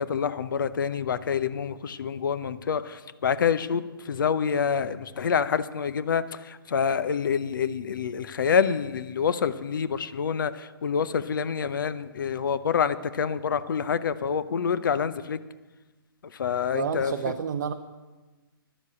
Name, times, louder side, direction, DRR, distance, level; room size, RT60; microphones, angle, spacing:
voice 1, 0.0-15.4 16.3-17.3, left 7 dB, 60° left, 14 dB, 0.7 m, -27 dB
voice 2, 16.7-17.7, right 7 dB, 50° right, 6 dB, 0.6 m, -29 dB
11.0 x 7.3 x 8.1 m, 1.2 s
hypercardioid pair, 140°, 12 cm